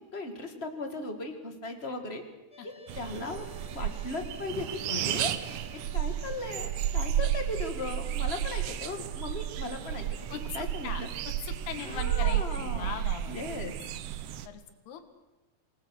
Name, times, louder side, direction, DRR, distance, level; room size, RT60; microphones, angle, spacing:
voice 1, 0.1-2.2 2.6-5.3 5.9-10.0 10.3-11.1 11.8-13.7, left 3 dB, 25° left, 5 dB, 1.4 m, -37 dB
sound 1, 2.5-12.6, left 3 dB, 45° left, 0.3 m, -55 dB
sound 2, 2.9-14.5, right 11 dB, 70° right, 2.0 m, -32 dB
voice 2, 11.4-13.6 14.5-15.1, left 8 dB, 80° left, 8 dB, 3.8 m, -40 dB
28.0 x 19.0 x 6.5 m, 1.1 s
omnidirectional pair, 4.6 m